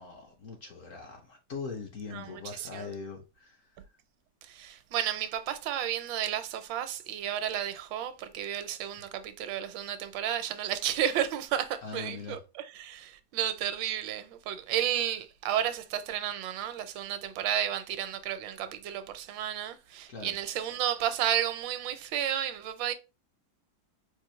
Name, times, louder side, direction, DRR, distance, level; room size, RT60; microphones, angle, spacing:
voice 1, 0.0-3.7 11.8-12.4 20.1-20.3, left 5 dB, 60° left, 0.9 m, -41 dB
voice 2, 2.1-2.9 4.4-22.9, right 10 dB, 85° right, 1.3 m, -32 dB
4.4 x 2.4 x 3.0 m
omnidirectional pair, 2.0 m